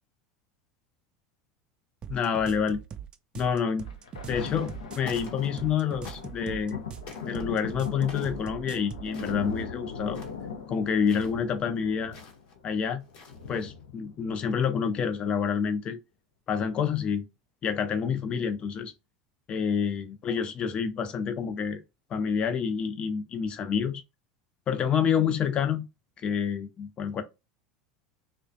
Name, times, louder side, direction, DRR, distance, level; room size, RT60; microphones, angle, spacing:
sound 1, 2.0-9.1, right 8 dB, 35° right, 0.3 m, -41 dB
voice 1, 2.1-2.8 3.4-3.9 4.3-6.8 7.3-10.2 10.7-12.2 12.6-13.0 13.5-16.0 16.5-17.3 17.6-18.9 19.5-21.8 22.1-24.0 24.7-25.9 26.2-27.2, left 7 dB, 40° left, 0.5 m, -28 dB
Thunder, 3.8-14.8 15.5-15.6, left 6 dB, 85° left, 0.6 m, -39 dB
sound 2, 4.4-4.8 5.0-5.7 6.0-6.5 7.0-7.4 8.1-8.4 9.0-9.7 10.0-10.5 11.0-11.3 12.1-12.5 13.0-13.6, left 4 dB, 60° left, 1.0 m, -47 dB
2.4 x 2.1 x 2.5 m
hypercardioid pair, 85°, 3 cm